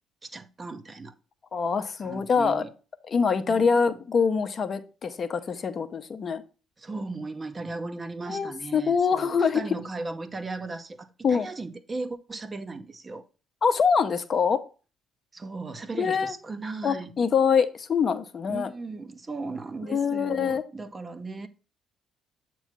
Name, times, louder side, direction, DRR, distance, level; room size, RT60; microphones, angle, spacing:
voice 1, 0.2-1.1 2.0-2.7 3.5-4.0 6.8-13.2 15.3-17.1 18.5-21.5, right 3 dB, 25° right, 0.6 m, -37 dB
voice 2, 1.5-2.6 3.1-6.4 8.3-9.6 11.2-11.5 13.6-14.6 16.0-16.3 16.8-18.7 19.9-20.6, left 6 dB, 40° left, 0.7 m, -24 dB
8.0 x 3.1 x 5.7 m
figure-of-eight pair, 45°, 0 cm